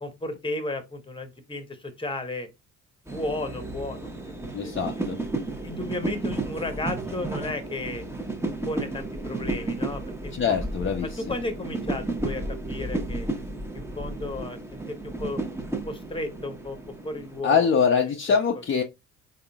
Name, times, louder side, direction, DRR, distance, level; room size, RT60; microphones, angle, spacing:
voice 1, 0.0-2.5 3.1-5.0 5.6-8.0 8.6-10.6 11.0-13.3 13.7-15.4 15.8-16.8 17.0-17.7 18.0-18.6, left 2 dB, 15° left, 1.1 m, -34 dB
sound 1, 3.1-17.4, right 2 dB, 5° right, 1.0 m, -33 dB
voice 2, 4.5-5.2 10.4-11.1 17.4-18.8, left 6 dB, 35° left, 0.7 m, -23 dB
3.8 x 3.7 x 2.3 m
supercardioid pair, 70°, 35 cm